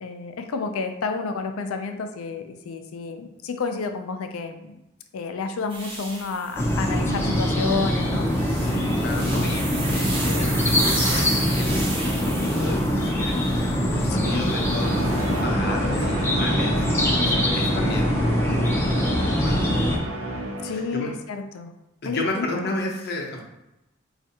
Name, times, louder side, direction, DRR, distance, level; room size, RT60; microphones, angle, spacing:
voice 1, 0.0-4.8 5.1-8.3 9.4-9.9 10.4-10.5 14.1-14.4 20.6-21.7 22.0-22.7, left 4 dB, 85° left, 7 dB, 0.4 m, -31 dB
sound 1, 5.7-6.9 8.2-13.7 14.4-15.4, right 2 dB, 25° right, 0.7 m, -33 dB
sound 2, 6.6-20.0, equal, 10° left, 0.4 m, -23 dB
voice 2, 8.5-11.3 11.5-19.7 20.7-21.1 22.0-23.4, left 2 dB, 50° left, 0 dB, 0.6 m, -33 dB
sound 3, 14.3-21.2, right 1 dB, 75° right, 0.6 m, -31 dB
4.3 x 2.4 x 2.7 m, 0.92 s
head